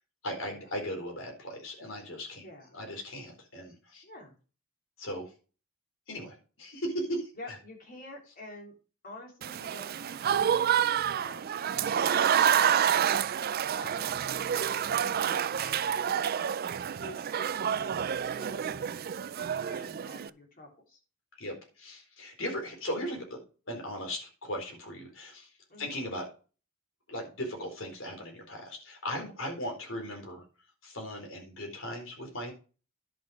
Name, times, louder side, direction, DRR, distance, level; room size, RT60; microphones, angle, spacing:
voice 1, 0.2-2.4 2.7-4.0 5.0-5.3 6.1-7.3 11.8-12.0 21.4-23.4 23.7-25.5 25.8-26.2 27.1-30.4 30.8-32.5, equal, 65° left, 2 dB, 4.1 m, -37 dB
voice 2, 4.0-4.3 7.4-8.7 9.0-9.9 10.3-10.8 11.1-12.2 12.6-13.3 13.6-16.2 17.0-21.0 25.7-26.0, left 1 dB, 45° left, 0 dB, 3.6 m, -48 dB
Applause / Crowd, 9.4-20.3, right 9 dB, 45° right, 0.4 m, -28 dB
10.5 x 6.0 x 5.0 m, 0.36 s
head